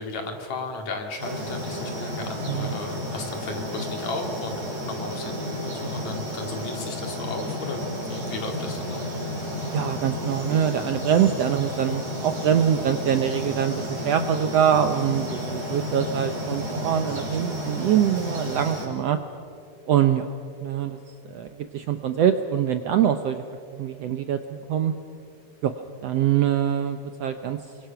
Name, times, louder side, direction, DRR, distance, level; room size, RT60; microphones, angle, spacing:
voice 1, 0.0-9.0, left 3 dB, 60° left, 3 dB, 3.5 m, -35 dB
sound 1, 1.2-18.9, left 1 dB, 55° right, 6.9 m, -32 dB
voice 2, 9.7-19.2 19.9-20.3 20.6-21.0 21.3-23.4 23.7-24.9 25.6-25.7 26.0-27.6, right 9 dB, 70° right, 8 dB, 1.6 m, -24 dB
30.0 x 24.0 x 5.8 m, 2.4 s
omnidirectional pair, 3.7 m